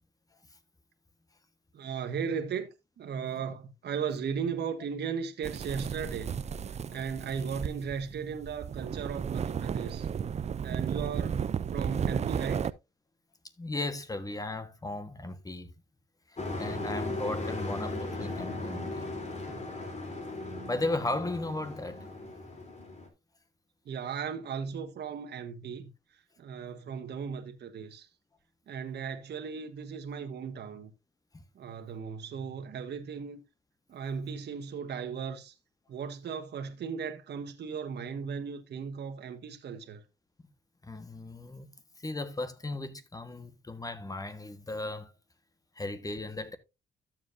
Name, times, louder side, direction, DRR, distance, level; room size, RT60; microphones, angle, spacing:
voice 1, 1.7-2.7 3.0-6.4 6.9-10.1 10.6-11.4 11.7-12.6 23.8-25.9 26.4-28.1 28.7-30.9 31.5-33.4 33.9-35.5 35.9-40.0, right 6 dB, 60° right, 1.3 m, -36 dB
sound 1, 5.4-12.7, right 7 dB, 35° right, 0.4 m, -34 dB
voice 2, 13.6-15.7 16.3-19.1 20.7-22.1 31.3-31.4 40.8-45.1 45.7-46.6, left 2 dB, 20° left, 1.3 m, -36 dB
Truck, 16.4-23.1, left 2 dB, 35° left, 3.2 m, -37 dB
12.5 x 7.4 x 2.6 m
cardioid pair, 90°, 20 cm